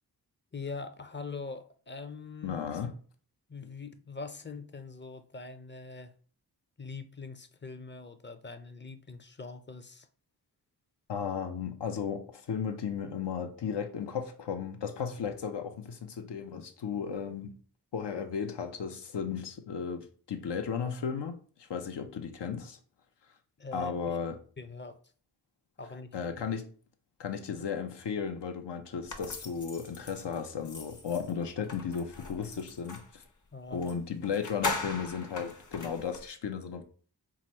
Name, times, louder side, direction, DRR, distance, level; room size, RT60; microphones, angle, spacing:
voice 1, 0.5-2.6 3.5-6.1 6.8-10.1 23.6-23.9 24.6-25.0 25.8-26.1 33.5-33.9, left 4 dB, 30° left, 0.5 m, -42 dB
voice 2, 2.4-2.9 11.1-17.6 17.9-22.8 23.2-23.4 23.7-24.4 26.1-26.7 27.2-33.2 33.7-36.8, left 6 dB, 85° left, 0.7 m, -35 dB
sound 1, 29.1-33.1 33.8-34.0 34.2-36.3, left 3 dB, 45° left, 0.9 m, -39 dB
4.8 x 2.0 x 4.2 m
wide cardioid pair, 60°, 41 cm